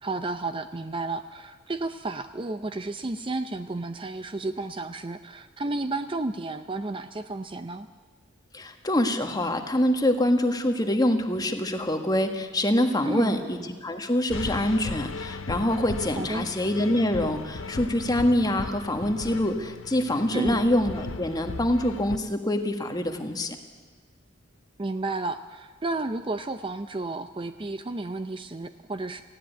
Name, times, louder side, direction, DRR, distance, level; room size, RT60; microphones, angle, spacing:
voice 1, 0.0-7.9 13.0-13.4 16.2-16.5 20.3-20.7 24.8-29.2, right 2 dB, 25° right, 10 dB, 0.6 m, -32 dB
voice 2, 8.5-23.6, left 1 dB, 20° left, 6 dB, 1.6 m, -25 dB
sound 1, 14.3-22.2, left 4 dB, 75° left, 0.7 m, -37 dB
19.0 x 15.5 x 9.1 m, 1.4 s
head